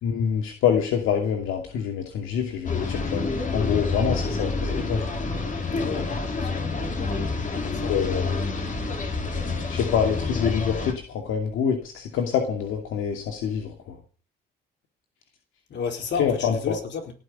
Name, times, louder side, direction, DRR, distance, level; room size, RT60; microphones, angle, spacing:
voice 1, 0.0-3.3 3.5-5.0 7.9-8.5 9.7-14.0 16.2-16.8, left 7 dB, 90° left, 3 dB, 2.6 m, -26 dB
sound 1, 2.6-10.9, left 3 dB, 40° left, 3.8 m, -28 dB
voice 2, 5.8-6.6 6.9-8.0 15.7-17.1, left 6 dB, 60° left, 3 dB, 4.2 m, -33 dB
17.5 x 6.4 x 9.5 m, 0.39 s
cardioid pair, 90°, 20 cm